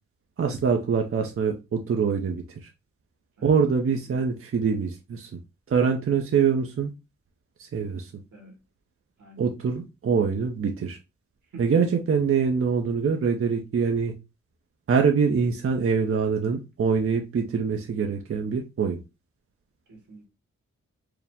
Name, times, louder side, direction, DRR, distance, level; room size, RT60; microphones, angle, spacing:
voice 1, 0.4-2.7 3.4-5.3 5.7-6.9 7.6-8.1 9.4-11.0 11.6-14.1 14.9-19.0, right 6 dB, 45° right, 0.6 m, -24 dB
voice 2, 9.2-9.5 11.5-11.8 19.9-20.3, right 2 dB, 80° right, 1.8 m, -46 dB
4.8 x 2.0 x 3.4 m
cardioid pair, 75°, 30 cm